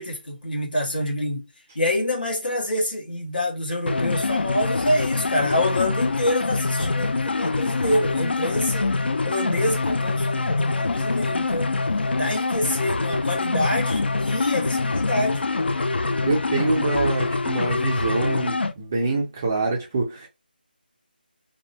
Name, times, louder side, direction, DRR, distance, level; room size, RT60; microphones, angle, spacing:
voice 1, 0.0-1.4 1.7-8.9 9.2-11.7 12.2-15.4, left 1 dB, 60° left, 1.5 m, -26 dB
sound 1, 3.9-18.7, left 3 dB, 80° left, 0.4 m, -25 dB
voice 2, 16.2-20.3, right 3 dB, 15° right, 0.4 m, -25 dB
2.7 x 2.1 x 2.7 m
figure-of-eight pair, 175°, 5 cm